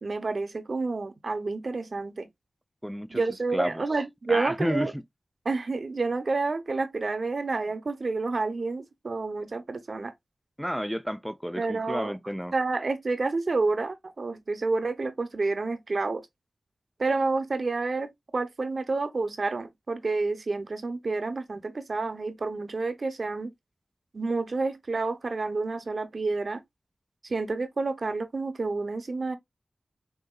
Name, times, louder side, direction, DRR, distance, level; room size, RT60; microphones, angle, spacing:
voice 1, 0.0-2.3 3.1-4.9 5.4-10.1 11.6-12.1 12.5-16.3 17.0-23.5 24.1-26.6 27.2-29.4, right 3 dB, 65° right, 0.8 m, -29 dB
voice 2, 2.8-3.2 3.5-3.8 4.3-5.0 10.6-12.5, equal, ahead, 0.4 m, -30 dB
6.2 x 2.8 x 2.3 m
cardioid pair, 45°, 0 cm